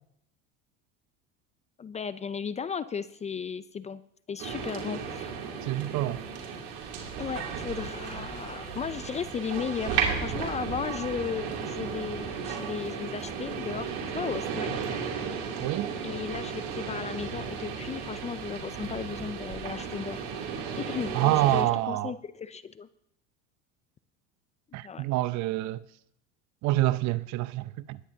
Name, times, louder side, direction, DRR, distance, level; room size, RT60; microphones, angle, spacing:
voice 1, 1.8-4.0 4.3-5.3 7.2-14.7 16.0-20.3 20.8-22.9 24.8-25.1, left 6 dB, 20° left, 0.4 m, -35 dB
sound 1, 4.4-21.6, right 6 dB, 75° right, 2.8 m, -34 dB
voice 2, 5.6-6.2 15.6-15.9 21.1-22.1 24.7-25.8 26.6-28.0, right 16 dB, 55° right, 0.6 m, -27 dB
20.0 x 9.8 x 2.8 m
supercardioid pair, 105°, 34 cm